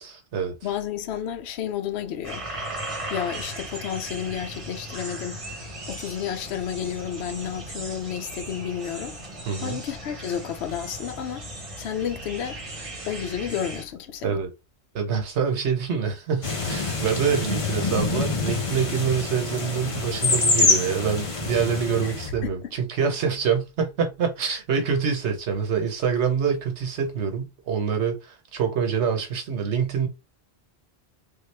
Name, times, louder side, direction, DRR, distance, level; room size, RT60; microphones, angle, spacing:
voice 1, 0.0-0.5 9.5-9.8 14.2-14.5 14.9-30.1, right 6 dB, 80° right, 1.2 m, -26 dB
voice 2, 0.6-2.5 3.1-9.2 9.6-11.5 11.8-12.6 13.1-14.4 22.0-22.5, left 9 dB, 75° left, 0.9 m, -31 dB
sound 1, 2.2-13.8, right 1 dB, 35° right, 0.9 m, -37 dB
sound 2, 16.4-22.3, left 3 dB, 35° left, 0.8 m, -25 dB
3.6 x 2.3 x 3.3 m
omnidirectional pair, 1.1 m